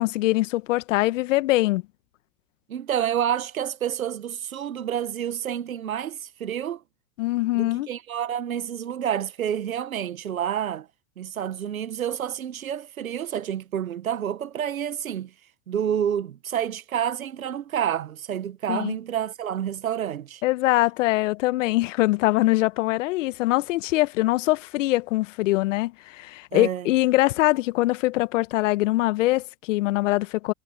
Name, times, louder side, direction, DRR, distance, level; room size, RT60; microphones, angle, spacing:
voice 1, 0.0-1.8 7.2-7.9 18.7-19.0 20.4-30.5, left 18 dB, 65° left, 1.4 m, -23 dB
voice 2, 2.7-6.8 7.5-10.9 11.2-15.3 15.7-20.4 26.5-26.9, right 9 dB, 85° right, 1.5 m, -29 dB
hypercardioid pair, 100°, 41 cm